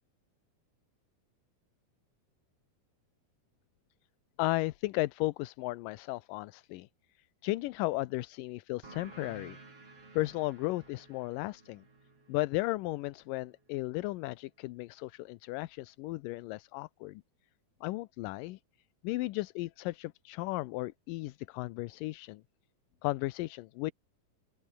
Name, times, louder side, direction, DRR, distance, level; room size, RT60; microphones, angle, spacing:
voice 1, 4.4-6.9 7.4-9.6 10.1-11.8 12.3-17.2 17.8-18.6 19.0-22.4 23.0-23.9, left 19 dB, 80° left, 2.2 m, -35 dB
sound 1, 8.8-14.0, right 3 dB, 40° right, 7.3 m, -54 dB
open air
omnidirectional pair, 4.1 m